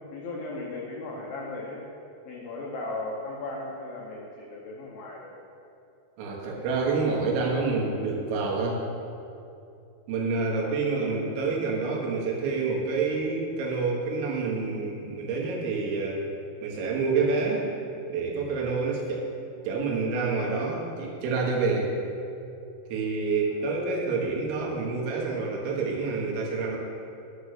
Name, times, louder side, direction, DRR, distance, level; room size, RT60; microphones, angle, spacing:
voice 1, 0.0-1.9 2.2-5.3 10.5-11.1 23.5-23.6, left 2 dB, 85° left, -3 dB, 2.1 m, -37 dB
voice 2, 6.2-8.8 10.1-16.2 16.6-17.7 18.1-19.3 19.7-21.9 22.9-26.8, right 4 dB, 80° right, -2 dB, 4.2 m, -28 dB
10.5 x 7.2 x 6.7 m, 2.7 s
omnidirectional pair, 5.9 m